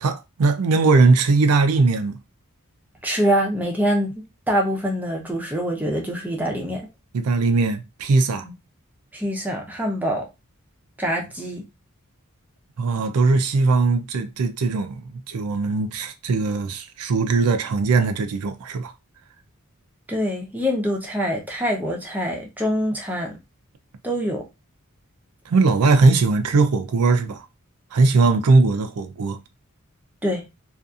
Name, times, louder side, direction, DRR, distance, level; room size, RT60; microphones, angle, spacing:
voice 1, 0.0-2.2 7.1-8.5 12.8-18.9 25.5-27.5 27.9-29.4, right 3 dB, 85° right, 0.4 m, -19 dB
voice 2, 3.0-6.9 8.4-8.5 9.1-10.3 11.0-11.6 20.1-23.4 24.0-24.4 30.2-30.4, equal, 10° right, 0.6 m, -25 dB
2.6 x 2.4 x 2.4 m
head